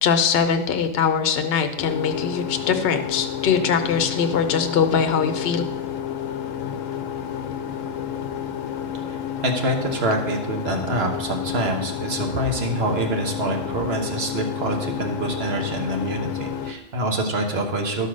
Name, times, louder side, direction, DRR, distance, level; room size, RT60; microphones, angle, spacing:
voice 1, 0.0-5.6, left 6 dB, 55° left, 7 dB, 0.9 m, -22 dB
sound 1, 1.8-16.7, left 9 dB, 80° left, 1.0 m, -30 dB
voice 2, 9.1-18.1, right 1 dB, 50° right, 3 dB, 1.4 m, -26 dB
12.0 x 4.1 x 6.3 m, 0.93 s
omnidirectional pair, 1.3 m